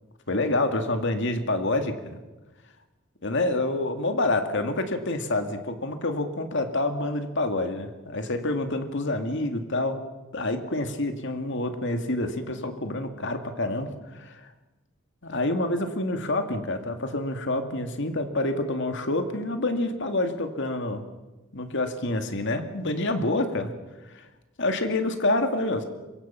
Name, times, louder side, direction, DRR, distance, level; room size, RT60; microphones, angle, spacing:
voice 1, 0.3-2.2 3.2-10.0 10.3-13.9 14.1-14.5 15.2-21.0 21.5-23.7 24.1-24.2 24.6-25.8, left 2 dB, 60° left, 6 dB, 2.3 m, -27 dB
26.0 x 23.0 x 5.8 m, 1.1 s
head